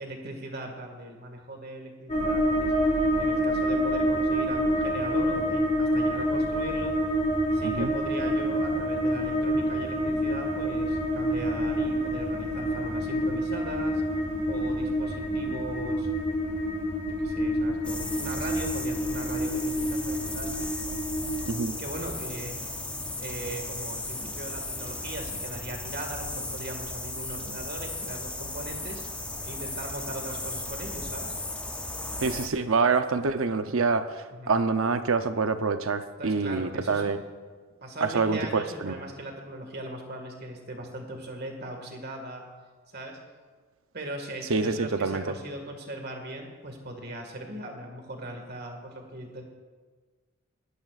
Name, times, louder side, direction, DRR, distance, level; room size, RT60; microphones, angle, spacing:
voice 1, 0.0-2.7 3.2-6.9 7.5-14.0 14.5-16.1 17.2-20.7 21.8-22.6 23.2-29.0 29.4-31.3 34.3-34.5 36.2-37.1 37.8-42.4 42.9-43.2 43.9-49.4, right 1 dB, 45° right, 3 dB, 1.8 m, -39 dB
sound 1, 2.1-21.5, equal, 35° left, 2.1 m, -27 dB
sound 2, 17.8-32.5, left 2 dB, 5° left, 0.5 m, -36 dB
voice 2, 32.2-34.1 34.5-37.2 38.0-38.9 44.5-45.2, right 4 dB, 70° right, 9 dB, 0.7 m, -26 dB
19.5 x 11.5 x 2.5 m, 1.4 s
head